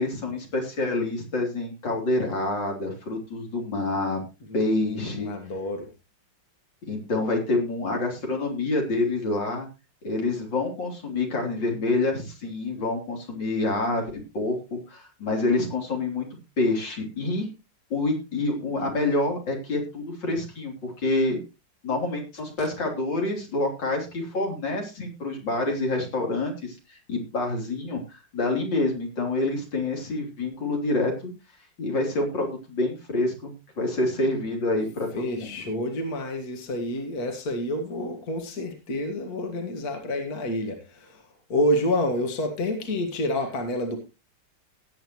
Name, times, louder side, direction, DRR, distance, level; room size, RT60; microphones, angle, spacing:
voice 1, 0.0-4.2 4.5-5.3 6.9-9.7 10.0-16.3 16.6-17.5 17.9-21.4 21.8-31.3 31.8-35.5, left 2 dB, 85° left, 1 dB, 4.2 m, -27 dB
voice 2, 4.5-5.9 35.1-44.0, left 1 dB, 55° left, 4 dB, 2.3 m, -28 dB
18.0 x 8.9 x 3.0 m, 0.28 s
omnidirectional pair, 2.0 m